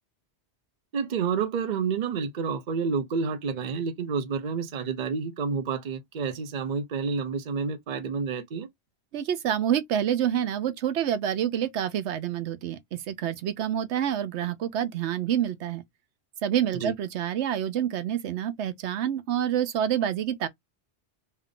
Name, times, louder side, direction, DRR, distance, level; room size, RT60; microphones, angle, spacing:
voice 1, 0.9-8.7 16.7-16.9, right 5 dB, 50° right, 0.7 m, -29 dB
voice 2, 9.1-15.8 16.4-20.5, right 10 dB, 85° right, 1.0 m, -27 dB
3.5 x 2.7 x 3.7 m
omnidirectional pair, 1.1 m